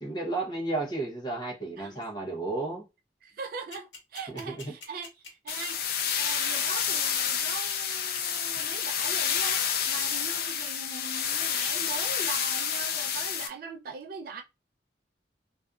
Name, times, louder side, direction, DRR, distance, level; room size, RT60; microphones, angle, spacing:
voice 1, 0.0-2.9 4.3-4.7, right 2 dB, 25° left, 0.8 m, -33 dB
voice 2, 3.2-14.4, right 5 dB, 55° right, 0.4 m, -41 dB
sound 1, 3.7-10.4, left 4 dB, 80° left, 1.1 m, -43 dB
sound 2, 5.5-13.5, left 8 dB, 55° left, 0.4 m, -29 dB
2.5 x 2.5 x 2.3 m
head